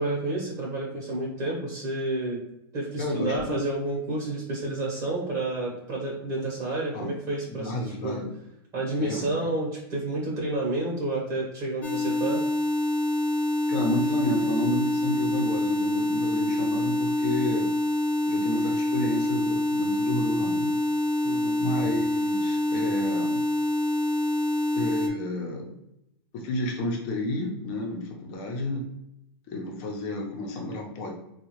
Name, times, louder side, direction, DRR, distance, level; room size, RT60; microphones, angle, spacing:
voice 1, 0.0-2.4 2.7-8.2 8.7-12.5 21.2-21.6, right 2 dB, 35° right, -5 dB, 1.2 m, -30 dB
voice 2, 3.0-3.4 6.9-7.1 7.5-8.3 9.0-9.5 13.7-17.7 18.3-20.8 21.6-23.4 24.8-25.7 26.3-28.8 29.5-31.1, left 1 dB, 45° left, 0 dB, 0.9 m, -31 dB
sound 1, 11.8-25.1, left 1 dB, 10° left, 0.4 m, -26 dB
3.6 x 2.4 x 3.0 m, 0.83 s
supercardioid pair, 140°, 13 cm